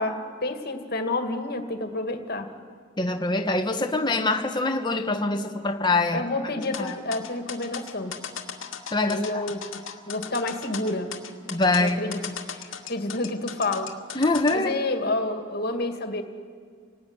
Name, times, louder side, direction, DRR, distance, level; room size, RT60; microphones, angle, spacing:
voice 1, 0.0-2.5 6.1-8.2 9.0-11.1 11.8-12.2 12.5-13.9 14.5-16.2, left 2 dB, 50° left, 6 dB, 2.2 m, -29 dB
voice 2, 3.0-6.3 6.8-7.0 8.9-9.5 11.5-12.1 14.1-14.7, left 2 dB, 20° left, 4 dB, 1.6 m, -24 dB
sound 1, 6.6-14.6, left 8 dB, 85° left, 2.1 m, -37 dB
29.0 x 19.0 x 9.8 m, 2.1 s
head